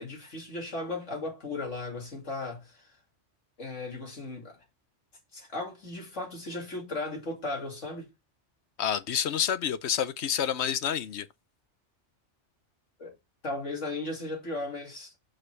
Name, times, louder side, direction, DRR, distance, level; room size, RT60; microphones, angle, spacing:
voice 1, 0.0-2.9 3.6-4.6 5.3-8.1 13.0-13.2 13.4-15.3, left 2 dB, 90° left, 2.9 m, -36 dB
voice 2, 8.8-11.3, left 9 dB, 70° left, 0.9 m, -28 dB
6.5 x 5.0 x 4.6 m
omnidirectional pair, 1.2 m